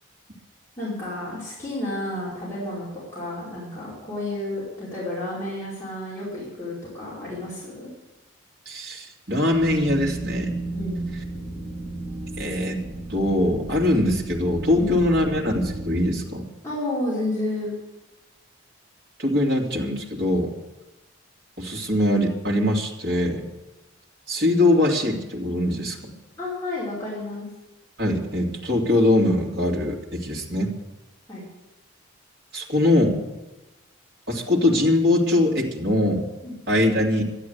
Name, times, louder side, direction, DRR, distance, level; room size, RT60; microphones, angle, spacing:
voice 1, 0.8-2.9 3.1-7.9 10.7-11.0 14.7-14.9 16.6-17.7 26.4-27.5 31.3-31.5 36.4-36.5, left 1 dB, 15° left, -10 dB, 5.0 m, -31 dB
voice 2, 8.7-10.5 12.4-12.8 13.1-16.5 19.2-20.5 21.6-23.4 24.3-26.1 28.0-30.7 32.5-33.2 34.3-36.3 36.7-37.2, left 1 dB, 50° right, -2 dB, 2.6 m, -22 dB
sound 1, 9.5-16.1, right 2 dB, 20° right, 6.0 m, -33 dB
12.5 x 11.0 x 8.1 m, 1.0 s
head